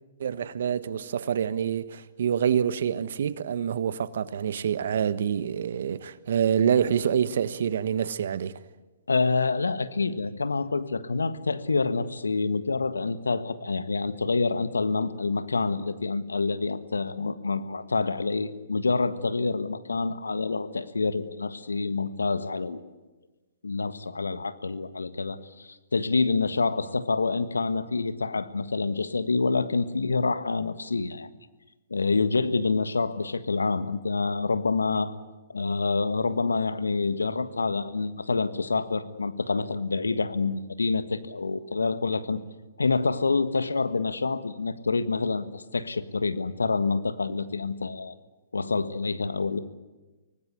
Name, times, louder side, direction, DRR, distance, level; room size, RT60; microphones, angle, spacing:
voice 1, 0.2-8.6, right 8 dB, 60° right, 1.3 m, -26 dB
voice 2, 9.1-22.9 23.6-31.3 31.9-35.1 35.5-42.4 42.8-48.1 48.5-49.6, left 4 dB, 85° left, 1.5 m, -27 dB
25.0 x 19.0 x 9.7 m
figure-of-eight pair, 125°, 0 cm